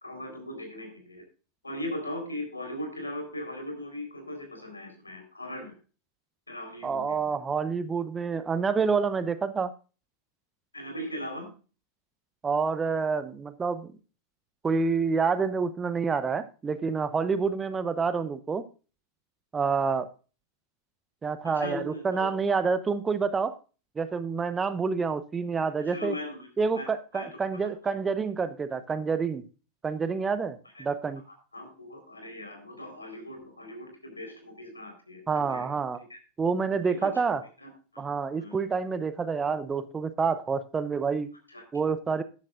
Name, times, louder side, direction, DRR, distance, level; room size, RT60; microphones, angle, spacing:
voice 1, 0.0-1.2 1.6-5.7 6.5-7.3 10.7-11.5 18.1-18.2 21.4-22.3 25.8-26.5 26.7-27.3 27.8-27.9 30.7-30.9 31.5-35.8 36.1-36.2 36.8-37.7 38.4-38.6 41.5-41.6, left 1 dB, 80° left, 5 dB, 4.2 m, -39 dB
voice 2, 6.8-9.7 12.4-13.9 14.6-18.6 19.5-20.1 21.2-23.6 24.0-26.2 26.6-29.4 29.8-31.2 35.3-36.0 36.4-37.4 38.0-41.3 41.7-42.2, right 5 dB, 15° right, 13 dB, 0.8 m, -28 dB
13.0 x 11.0 x 2.5 m, 0.35 s
figure-of-eight pair, 90°, 0 cm